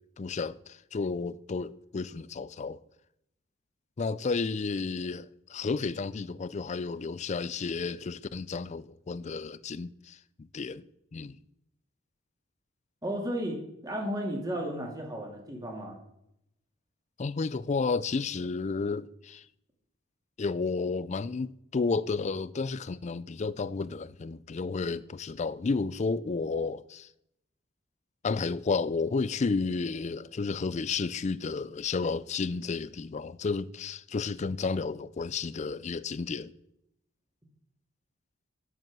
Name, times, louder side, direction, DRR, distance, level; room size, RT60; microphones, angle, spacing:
voice 1, 0.2-2.8 4.0-10.8 11.1-11.4 17.2-19.4 20.4-27.1 28.2-36.5, left 4 dB, 35° left, 0.4 m, -32 dB
voice 2, 13.0-13.6 13.8-16.0, equal, 20° right, 2.7 m, -33 dB
10.5 x 7.4 x 7.5 m
head